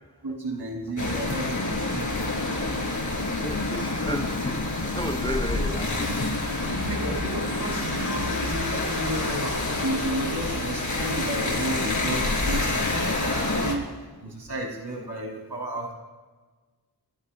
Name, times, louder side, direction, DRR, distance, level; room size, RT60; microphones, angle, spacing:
voice 1, 0.2-2.3 6.1-13.9 14.2-15.9, right 2 dB, 90° right, 0 dB, 2.6 m, -33 dB
sound 1, 1.0-13.8, left 2 dB, 50° left, 3.1 m, -27 dB
voice 2, 3.4-6.1 6.6-6.7, left 1 dB, 10° left, 9 dB, 0.7 m, -33 dB
28.0 x 17.5 x 2.2 m, 1.3 s
wide cardioid pair, 70°, 39 cm